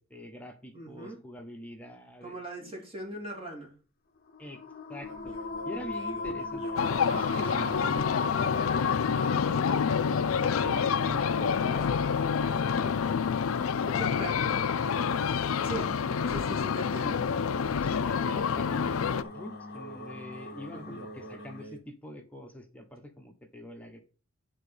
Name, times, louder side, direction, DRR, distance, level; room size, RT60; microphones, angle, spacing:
voice 1, 0.0-2.8 4.4-4.6 4.9-5.3 5.6-13.1 13.9-14.6 17.8-24.0, left 1 dB, 5° left, 1.1 m, -44 dB
voice 2, 0.7-1.2 2.2-3.7 12.5-13.0 13.8-14.4 15.6-15.9 16.3-17.2 20.7-21.0, right 2 dB, 25° right, 2.6 m, -40 dB
sound 1, 4.3-21.6, left 4 dB, 45° left, 0.7 m, -38 dB
sound 2, 5.0-12.1 12.4-12.8 14.7-21.8, equal, 85° right, 1.5 m, -46 dB
sound 3, 6.8-19.2, left 6 dB, 85° left, 0.5 m, -28 dB
9.1 x 3.8 x 6.9 m
head